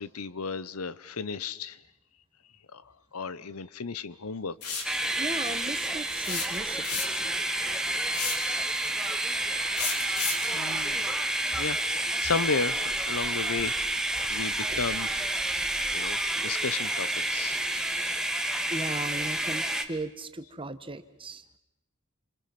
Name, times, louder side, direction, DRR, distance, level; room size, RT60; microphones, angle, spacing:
voice 1, 0.0-1.8 2.7-2.8 3.1-4.6 8.7-9.3 10.5-11.8 12.2-13.8 14.3-15.1 15.9-17.6, left 4 dB, 75° left, 17 dB, 0.9 m, -34 dB
sound 1, 4.6-4.9 6.2-7.3 8.1-8.5 9.8-10.5, left 4 dB, 90° left, 4.6 m, -31 dB
sound 2, 4.8-19.8, right 1 dB, 5° right, 1.7 m, -29 dB
voice 2, 5.1-7.0 14.7-14.8 18.7-21.4, right 2 dB, 25° right, 11 dB, 1.4 m, -37 dB
28.5 x 26.5 x 5.9 m, 0.89 s
head